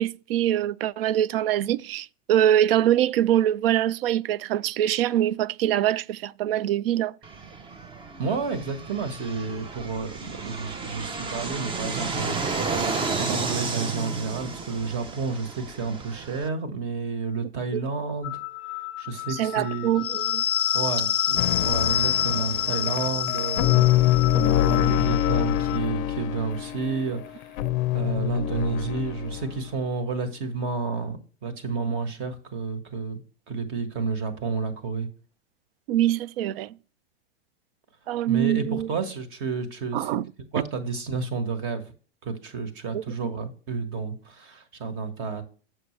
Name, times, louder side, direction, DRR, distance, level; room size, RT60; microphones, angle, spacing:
voice 1, 0.0-7.2 17.7-17.8 19.3-20.4 35.9-36.8 38.1-38.9 39.9-40.2 40.5-40.6 42.9-43.0, right 12 dB, 65° right, 0.5 m, -24 dB
Fixed-wing aircraft airplane, 7.2-16.5, right 4 dB, 15° right, 0.6 m, -32 dB
voice 2, 8.2-18.3 19.0-20.0 20.7-27.6 27.9-33.2 33.5-35.1 38.3-40.2 40.5-41.8 42.2-45.4, right 4 dB, 40° right, 1.5 m, -30 dB
sound 1, 18.2-25.8, left 10 dB, 15° left, 1.1 m, -28 dB
sound 2, 21.4-29.6, left 14 dB, 45° left, 0.5 m, -25 dB
7.6 x 6.2 x 3.2 m
hypercardioid pair, 120°, 31 cm